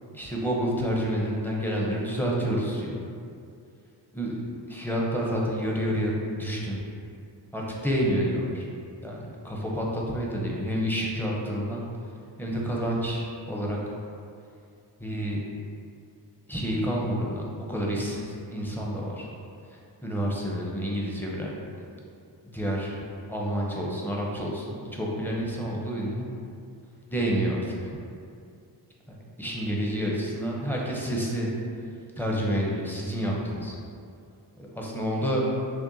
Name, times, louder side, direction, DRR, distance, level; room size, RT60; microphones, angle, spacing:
voice 1, 0.1-3.0 4.1-4.4 4.7-6.8 7.5-8.6 9.0-9.2 9.4-11.8 12.4-13.8 15.0-15.4 16.5-19.3 20.0-21.9 22.4-23.0 23.3-26.3 27.1-27.9 29.1-31.5 32.2-33.7 34.7-35.4, equal, 5° left, -3 dB, 0.6 m, -29 dB
5.9 x 2.2 x 2.6 m, 2.4 s
cardioid pair, 90°, 42 cm